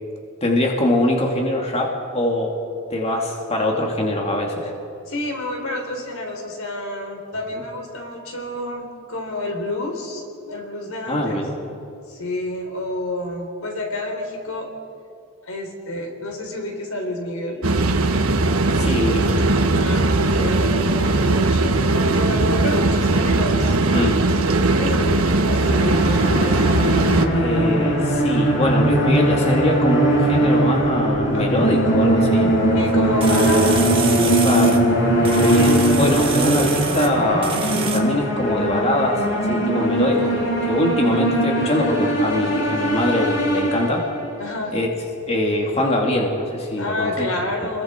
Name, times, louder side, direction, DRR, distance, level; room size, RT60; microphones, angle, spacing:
voice 1, 0.4-2.6 2.9-4.7 11.1-11.5 18.8-19.4 23.9-24.2 27.3-32.5 34.4-34.8 35.4-44.1 44.7-44.9 45.3-47.3, left 1 dB, 30° left, 0 dB, 2.4 m, -22 dB
voice 2, 5.1-11.4 12.1-14.7 15.4-17.6 19.8-23.8 24.6-26.7 31.3-31.4 32.7-34.6 44.4-44.8 46.8-47.8, left 1 dB, 85° left, 2 dB, 3.8 m, -29 dB
sound 1, 17.6-27.3, right 2 dB, 85° right, 1.3 m, -19 dB
sound 2, 25.6-44.3, right 1 dB, 60° left, 7.2 m, -20 dB
sound 3, 32.9-33.0 33.2-34.8 35.2-37.1 37.4-38.0, right 6 dB, 25° right, 2.0 m, -28 dB
29.5 x 22.0 x 4.5 m, 2.6 s
head